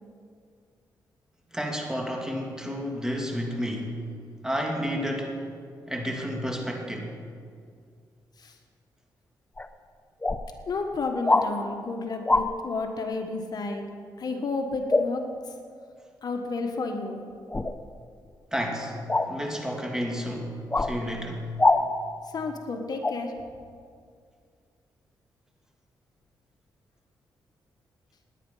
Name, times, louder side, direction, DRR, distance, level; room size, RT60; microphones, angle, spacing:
voice 1, 1.5-3.9 4.4-5.4 5.9-7.2 18.5-19.0 19.3-21.4, equal, 5° right, 0 dB, 2.8 m, -31 dB
sound 1, 9.6-9.7 10.2-10.4 11.3-11.5 12.2-12.5 14.9-15.1 17.5-17.7 19.1-19.3 20.7-20.9 21.6-21.8 23.0-23.2, left 2 dB, 20° left, 0.8 m, -22 dB
voice 2, 10.7-13.9 14.2-15.2 16.2-17.2 22.3-23.3, left 3 dB, 55° left, 4 dB, 1.4 m, -31 dB
18.0 x 10.0 x 5.7 m, 2.2 s
cardioid pair, 80°, 8 cm